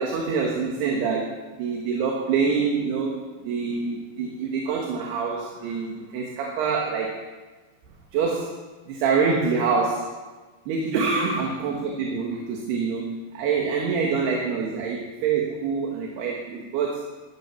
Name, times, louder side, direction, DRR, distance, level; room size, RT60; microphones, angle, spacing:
voice 1, 0.0-7.3 8.1-8.6 8.9-10.2 10.7-17.1, right 5 dB, 65° right, -1 dB, 3.3 m, -26 dB
14.5 x 10.5 x 6.1 m, 1.3 s
omnidirectional pair, 5.4 m